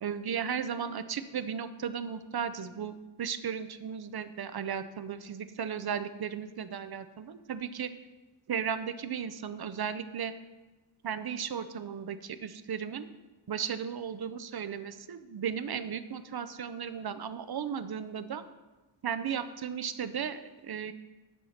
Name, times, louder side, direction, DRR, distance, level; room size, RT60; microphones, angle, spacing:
voice 1, 0.0-2.9 3.2-7.9 8.5-10.3 11.0-13.1 13.5-18.4 19.0-20.9, right 7 dB, 55° right, 12 dB, 0.7 m, -35 dB
7.9 x 7.3 x 5.8 m, 1.1 s
wide cardioid pair, 95°, 46 cm